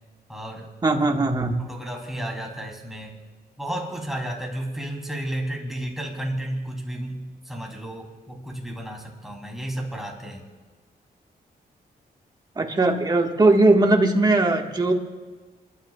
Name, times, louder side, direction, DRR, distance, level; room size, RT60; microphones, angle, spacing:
voice 1, 0.3-0.7 1.6-3.2 3.6-10.5, right 1 dB, ahead, -1 dB, 3.3 m, -32 dB
voice 2, 0.8-1.6 12.5-14.9, right 2 dB, 25° right, 2 dB, 1.6 m, -19 dB
29.5 x 12.5 x 2.4 m, 1.4 s
cardioid pair, 115°, 17 cm